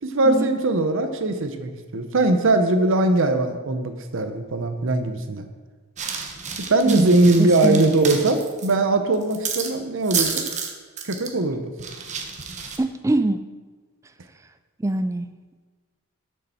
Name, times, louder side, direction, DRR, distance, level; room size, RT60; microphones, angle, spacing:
voice 1, 0.0-5.5 6.7-10.5 11.0-11.7, right 2 dB, 60° right, 8 dB, 0.8 m, -20 dB
sound 1, 6.0-8.7 9.1-9.7 10.0-10.7 11.0-11.3 11.8-12.8, right 6 dB, 35° right, 0.9 m, -30 dB
voice 2, 6.9-7.8 12.8-13.4 14.8-15.3, right 2 dB, 15° right, 9 dB, 0.3 m, -23 dB
10.0 x 6.6 x 4.4 m, 1.3 s
head